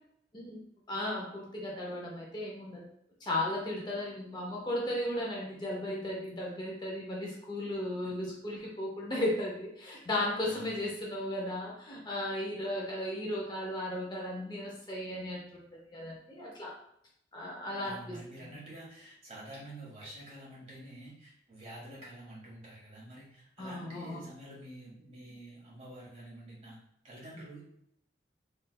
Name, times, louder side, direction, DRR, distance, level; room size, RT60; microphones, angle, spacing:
voice 1, 0.9-2.8 3.2-15.4 15.7-16.7 17.3-18.2 23.6-24.2, left 1 dB, 25° left, -3 dB, 0.6 m, -35 dB
voice 2, 10.4-10.8 17.8-26.8 27.0-27.6, right 1 dB, 35° right, -6 dB, 1.5 m, -48 dB
3.3 x 3.1 x 2.2 m, 0.73 s
head